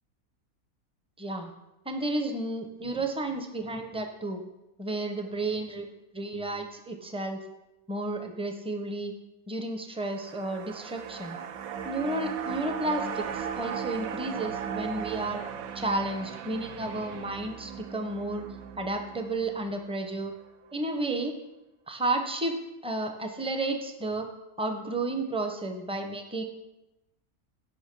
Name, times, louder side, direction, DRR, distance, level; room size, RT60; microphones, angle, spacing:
voice 1, 1.2-1.5 1.9-4.4 4.8-5.9 6.1-7.4 7.9-9.1 9.5-11.4 11.8-15.4 15.7-18.5 18.8-20.3 20.7-21.3 21.9-22.6 22.8-24.3 24.6-26.4, right 2 dB, 5° right, 5 dB, 0.4 m, -32 dB
sound 1, 10.0-20.4 20.7-20.8, right 8 dB, 75° right, 1.1 m, -37 dB
8.8 x 5.4 x 6.0 m, 0.95 s
omnidirectional pair, 1.6 m